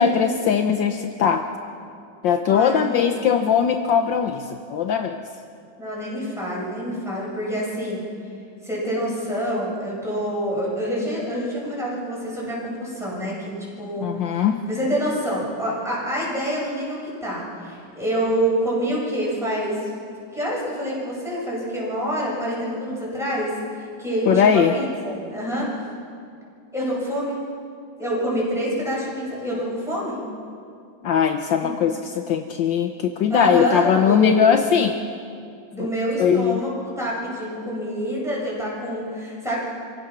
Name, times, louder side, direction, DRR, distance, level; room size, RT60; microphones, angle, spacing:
voice 1, 0.0-1.5 2.2-5.2 14.0-14.6 24.3-24.8 31.0-35.0 35.8-35.9 36.2-36.6, left 7 dB, 70° left, 6 dB, 1.5 m, -20 dB
voice 2, 2.5-3.1 5.8-8.0 8.6-20.0 20.3-25.7 26.7-27.4 28.0-30.2 31.6-31.7 33.3-34.5 35.7-39.6, equal, ahead, -6 dB, 7.1 m, -27 dB
26.5 x 16.5 x 6.1 m, 2.4 s
omnidirectional pair, 2.2 m